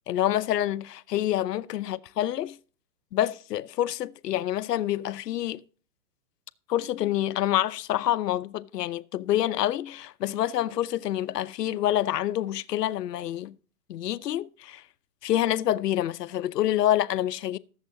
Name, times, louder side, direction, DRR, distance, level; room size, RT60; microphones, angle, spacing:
voice 1, 0.1-2.6 3.1-5.6 6.7-13.5 13.9-14.8 15.2-17.6, left 12 dB, 70° left, 0.7 m, -27 dB
20.0 x 7.5 x 2.8 m
hypercardioid pair, 165°, 50 cm